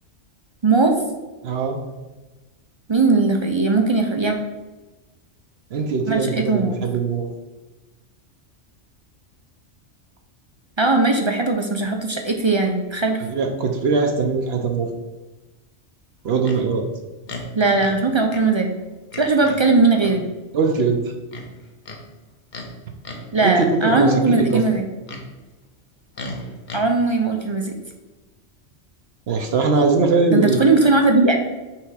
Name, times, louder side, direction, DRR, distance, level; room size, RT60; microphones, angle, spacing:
voice 1, 0.6-1.0 2.9-4.4 6.1-6.8 10.8-13.2 17.5-18.7 19.2-20.2 23.3-24.8 26.7-27.7 30.3-31.4, right 3 dB, 40° right, 3 dB, 0.4 m, -19 dB
voice 2, 1.4-1.8 5.7-7.3 13.2-14.9 16.2-16.9 20.5-21.1 23.4-24.6 29.3-30.7, right 4 dB, 65° right, 3 dB, 0.9 m, -21 dB
Livestock farm animals working animals, 16.4-16.6 17.3-18.0 18.3-18.5 19.1-19.6 20.0-20.2 21.3-22.0 22.5-22.7 23.0-23.3 24.7-25.3 26.1-26.8, left 1 dB, 45° left, 0.9 m, -35 dB
5.9 x 3.4 x 4.8 m, 1.2 s
omnidirectional pair, 1.2 m